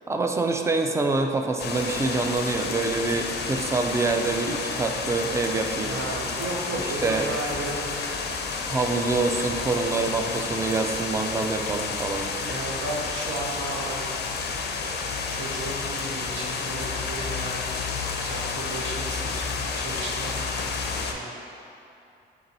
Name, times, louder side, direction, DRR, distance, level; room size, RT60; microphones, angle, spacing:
voice 1, 0.1-6.0 7.0-7.3 8.7-12.3, right 3 dB, 15° right, 4 dB, 0.3 m, -26 dB
sound 1, 1.6-21.1, left 4 dB, 55° left, 0.4 m, -30 dB
voice 2, 5.8-8.4 12.4-14.0 14.8-17.5 18.2-20.4 20.8-21.3, right 2 dB, 75° right, -1 dB, 0.7 m, -34 dB
4.0 x 3.0 x 4.1 m, 2.7 s
cardioid pair, 90°, 20 cm